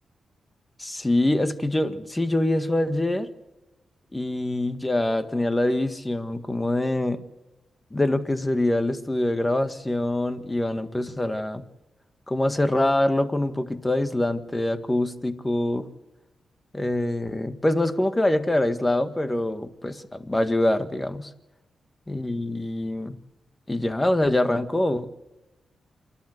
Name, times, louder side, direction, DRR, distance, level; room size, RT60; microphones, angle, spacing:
voice 1, 0.8-3.3 4.1-7.2 7.9-11.6 12.3-15.9 16.7-21.3 22.1-23.2 23.7-25.1, left 1 dB, 20° left, 10 dB, 1.8 m, -24 dB
27.5 x 12.0 x 8.0 m, 1.0 s
cardioid pair, 60°, 0 cm